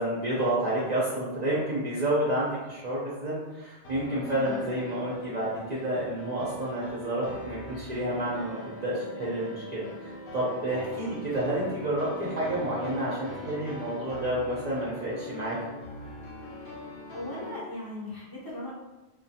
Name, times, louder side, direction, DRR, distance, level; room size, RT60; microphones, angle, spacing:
voice 1, 0.0-15.6, right 1 dB, 50° right, -9 dB, 0.6 m, -30 dB
sound 1, 3.8-17.6, left 1 dB, 75° left, 0.8 m, -41 dB
voice 2, 4.3-4.6 11.0-11.1 17.1-18.7, left 1 dB, 25° left, -7 dB, 0.6 m, -38 dB
2.3 x 2.2 x 2.7 m, 1.1 s
omnidirectional pair, 1.2 m